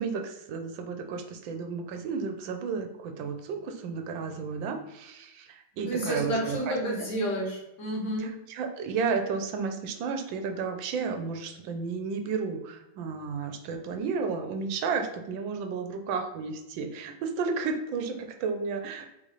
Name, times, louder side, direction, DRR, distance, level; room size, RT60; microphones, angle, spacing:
voice 1, 0.0-6.8 8.2-19.1, right 5 dB, 85° right, 6 dB, 1.4 m, -32 dB
voice 2, 5.9-8.3, right 1 dB, 60° left, -3 dB, 1.9 m, -30 dB
4.0 x 3.1 x 4.0 m, 0.90 s
omnidirectional pair, 2.0 m